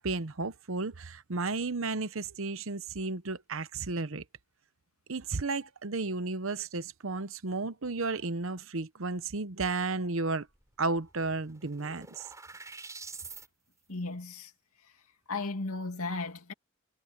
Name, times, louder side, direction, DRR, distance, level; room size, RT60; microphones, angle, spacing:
voice 1, 0.0-4.2 5.1-10.5 10.8-12.3, right 3 dB, 70° right, 0.9 m, -33 dB
sound 1, 10.6-10.7 11.0-13.5, right 4 dB, 15° right, 6.6 m, -46 dB
voice 2, 13.9-14.5 15.3-16.5, left 3 dB, 90° left, 2.6 m, -35 dB
head